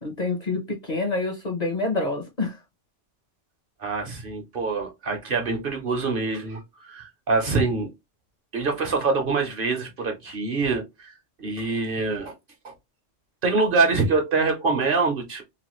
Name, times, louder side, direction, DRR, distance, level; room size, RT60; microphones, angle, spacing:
voice 1, 0.0-2.6, left 3 dB, 45° left, 0.6 m, -27 dB
voice 2, 3.8-7.9 8.5-11.1 11.4-12.3 12.6-12.7 13.4-15.4, right 4 dB, 55° right, 0.8 m, -25 dB
3.0 x 2.3 x 2.9 m
omnidirectional pair, 1.3 m